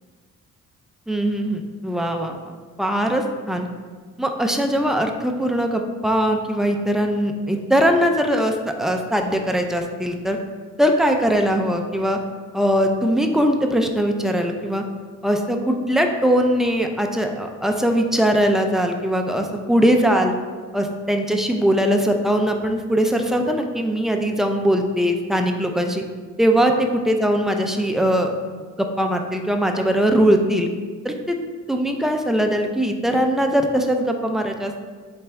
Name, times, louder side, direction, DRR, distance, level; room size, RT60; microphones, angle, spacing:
voice 1, 1.1-3.7 4.2-10.4 10.8-12.2 12.5-14.8 15.2-20.3 20.7-26.0 26.4-28.5 28.8-30.7 31.0-31.4 31.7-34.8, equal, ahead, 3 dB, 0.3 m, -21 dB
4.0 x 3.4 x 3.3 m, 1.5 s
cardioid pair, 90°, 30 cm